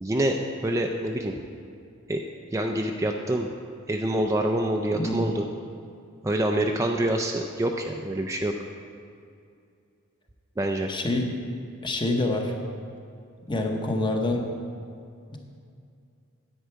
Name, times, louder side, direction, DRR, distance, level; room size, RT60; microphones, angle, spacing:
voice 1, 0.0-1.3 2.1-2.2 2.5-3.5 3.9-5.5 6.2-8.5 10.6-10.9, right 1 dB, 15° right, 2 dB, 0.4 m, -26 dB
voice 2, 4.9-5.3 10.9-11.3 11.8-12.5 13.5-14.4 15.3-15.4, left 2 dB, 20° left, 2 dB, 0.9 m, -26 dB
10.0 x 8.0 x 4.6 m, 2.4 s
head